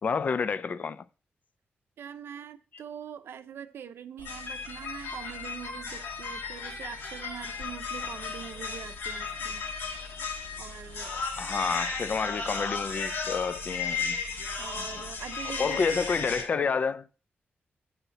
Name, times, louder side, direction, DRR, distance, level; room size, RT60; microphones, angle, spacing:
voice 1, 0.0-1.0 11.4-14.2 14.8-14.9 15.6-17.1, left 5 dB, 40° left, 0.4 m, -29 dB
voice 2, 2.0-9.6 10.6-11.2 14.6-15.8 16.1-16.5, right 8 dB, 80° right, 0.6 m, -43 dB
sound 1, 4.2-16.4, left 4 dB, 85° left, 1.7 m, -35 dB
8.1 x 5.7 x 4.0 m
wide cardioid pair, 145°, 4 cm